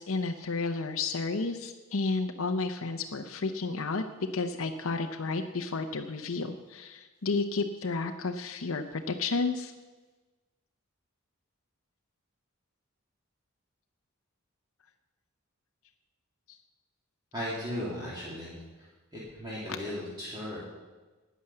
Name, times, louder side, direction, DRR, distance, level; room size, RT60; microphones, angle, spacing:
voice 1, 0.0-4.0 4.3-9.7 16.5-16.6, left 3 dB, 75° left, 5 dB, 0.7 m, -32 dB
voice 2, 17.3-18.9 19.1-20.6, equal, 20° right, -8 dB, 2.8 m, -37 dB
11.5 x 9.5 x 7.7 m, 1.2 s
head